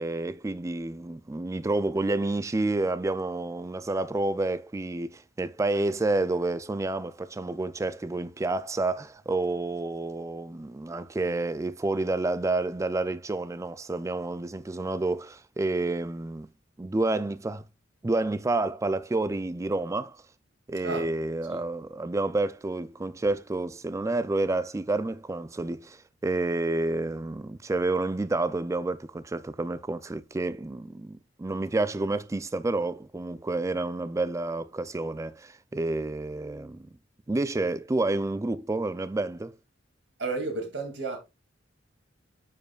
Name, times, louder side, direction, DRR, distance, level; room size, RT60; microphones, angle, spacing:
voice 1, 0.0-16.5 16.8-17.6 18.0-20.2 20.7-36.9 37.3-39.5, right 2 dB, 15° right, 0.4 m, -29 dB
voice 2, 40.2-41.2, right 3 dB, 70° right, 2.5 m, -32 dB
9.3 x 5.1 x 2.4 m
head